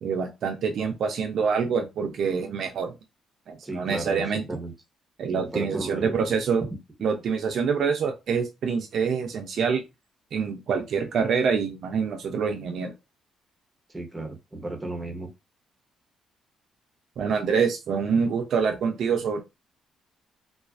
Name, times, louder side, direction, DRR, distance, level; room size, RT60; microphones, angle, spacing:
voice 1, 0.0-3.0 3.5-4.5 5.2-6.7 7.0-9.8 10.3-12.9 17.2-19.4, right 6 dB, 65° right, 4 dB, 0.5 m, -26 dB
voice 2, 3.6-4.7 5.4-6.2 13.9-15.3, right 2 dB, 10° right, 2 dB, 0.8 m, -34 dB
2.4 x 2.4 x 2.4 m, 0.25 s
cardioid pair, 90°, 0 cm